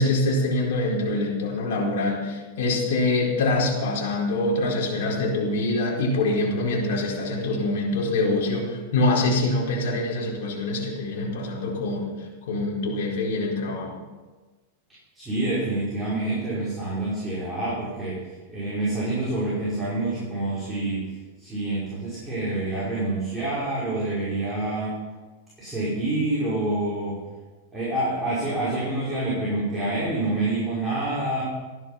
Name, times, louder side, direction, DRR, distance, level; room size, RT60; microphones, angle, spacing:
voice 1, 0.0-14.0, left 2 dB, 70° left, -2 dB, 4.5 m, -25 dB
voice 2, 15.2-18.2 18.5-21.1 21.4-25.0 25.6-27.2 27.7-31.4, right 2 dB, 5° right, -10 dB, 5.4 m, -27 dB
15.0 x 11.0 x 5.8 m, 1.3 s
supercardioid pair, 145°, 0 cm